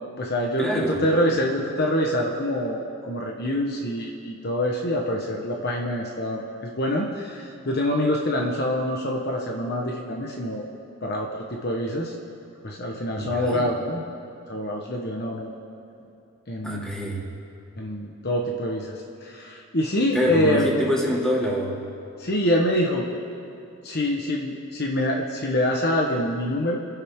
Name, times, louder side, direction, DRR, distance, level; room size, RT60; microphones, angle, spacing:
voice 1, 0.0-10.7 11.0-12.1 12.6-14.0 14.5-15.5 16.5-16.9 17.8-20.6 22.2-23.1 23.8-26.8, left 1 dB, 45° left, 0 dB, 1.3 m, -25 dB
voice 2, 0.6-1.0 13.2-13.7 16.6-17.2 20.1-21.8, equal, 5° left, -5 dB, 2.7 m, -25 dB
29.0 x 11.0 x 3.8 m, 2.8 s
head